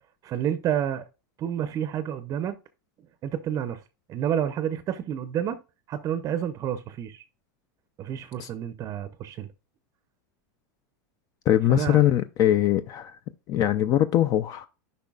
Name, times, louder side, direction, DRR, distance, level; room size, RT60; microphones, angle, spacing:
voice 1, 0.2-1.0 1.4-2.5 3.2-3.8 4.1-5.6 5.9-7.2 8.0-9.5 11.7-12.0, right 9 dB, 35° right, 0.6 m, -29 dB
voice 2, 11.5-13.2 13.5-14.7, left 12 dB, 35° left, 0.5 m, -22 dB
10.5 x 5.4 x 2.4 m
supercardioid pair, 125°, 10 cm